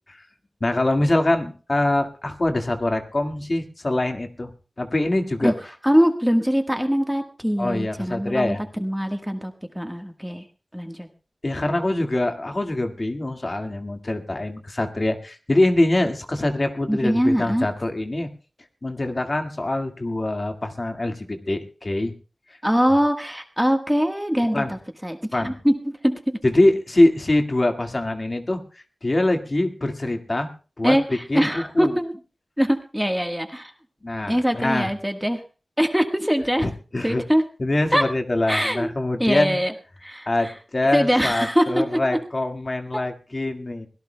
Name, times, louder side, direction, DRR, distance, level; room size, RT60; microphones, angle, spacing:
voice 1, 0.6-4.5 4.8-5.5 7.6-8.6 11.4-18.3 18.8-22.1 22.5-22.6 24.5-24.7 25.3-25.6 26.4-30.5 30.8-31.9 34.0-34.9 36.6-37.2 37.6-39.6 40.3-43.9, left 1 dB, 40° left, 5 dB, 1.9 m, -24 dB
voice 2, 5.8-10.4 10.7-11.1 16.9-17.7 22.6-26.4 30.8-32.1 32.6-33.7 34.3-35.4 35.8-36.7 37.0-37.4 37.9-38.0 38.5-38.9 39.2-39.7 40.0-40.5 40.9-41.8, equal, 5° right, 4 dB, 1.4 m, -22 dB
23.5 x 17.5 x 2.2 m, 0.36 s
wide cardioid pair, 70°, 0 cm